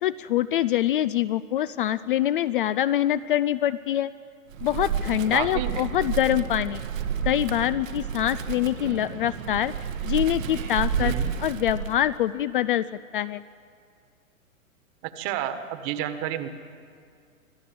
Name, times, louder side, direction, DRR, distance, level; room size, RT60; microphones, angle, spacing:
voice 1, 0.0-4.1 4.6-6.8 7.2-9.7 10.0-11.1 11.4-12.8 13.1-13.4, left 12 dB, 40° left, 16 dB, 0.4 m, -24 dB
Wind, 4.5-12.3, right 7 dB, 65° right, 1.3 m, -31 dB
voice 2, 5.3-5.8 11.0-11.4 15.0-16.5, right 10 dB, 35° right, 10 dB, 1.5 m, -30 dB
25.5 x 15.0 x 7.7 m, 2.2 s
hypercardioid pair, 125°, 42 cm